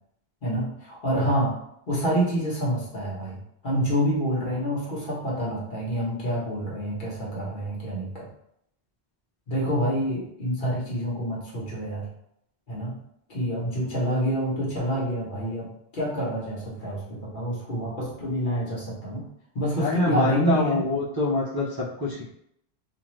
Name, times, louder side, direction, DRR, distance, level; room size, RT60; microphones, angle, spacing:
voice 1, 0.4-1.6 1.9-8.3 9.5-12.1 12.7-12.9 13.3-19.2 19.5-20.8, equal, 55° left, -5 dB, 1.1 m, -27 dB
voice 2, 19.8-22.2, left 3 dB, 30° right, -8 dB, 0.4 m, -25 dB
2.6 x 2.4 x 3.0 m, 0.74 s
omnidirectional pair, 1.0 m